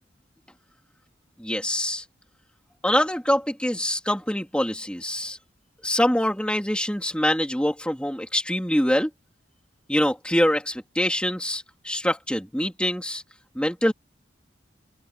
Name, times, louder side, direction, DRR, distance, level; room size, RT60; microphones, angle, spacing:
voice 1, 1.4-2.0 2.8-5.4 5.8-9.1 9.9-13.2 13.6-13.9, left 1 dB, 5° left, 3.7 m, -24 dB
open air
head